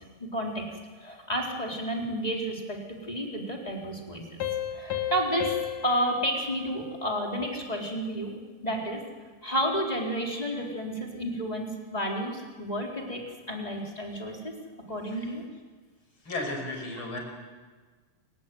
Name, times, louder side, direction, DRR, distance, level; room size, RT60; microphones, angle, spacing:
voice 1, 0.2-4.4 4.7-5.5 5.8-8.3 8.6-9.0 9.4-14.5 14.9-15.4, equal, 10° left, -1 dB, 3.8 m, -31 dB
Piano, 4.4-7.7, left 11 dB, 50° left, 2.8 m, -34 dB
voice 2, 16.2-17.2, left 2 dB, 30° left, 2 dB, 6.4 m, -34 dB
28.5 x 16.5 x 9.5 m, 1.4 s
omnidirectional pair, 4.3 m